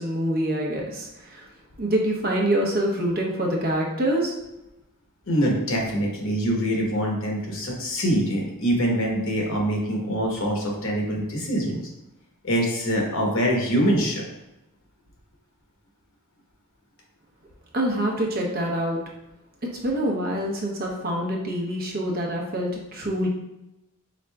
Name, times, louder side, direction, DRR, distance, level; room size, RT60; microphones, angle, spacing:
voice 1, 0.0-1.5 1.8-4.3 17.7-19.0 19.8-23.3, right 1 dB, 45° right, 0 dB, 0.7 m, -25 dB
voice 2, 5.3-11.8 12.4-14.3, equal, 65° left, -1 dB, 1.0 m, -24 dB
5.0 x 3.7 x 2.3 m, 0.93 s
head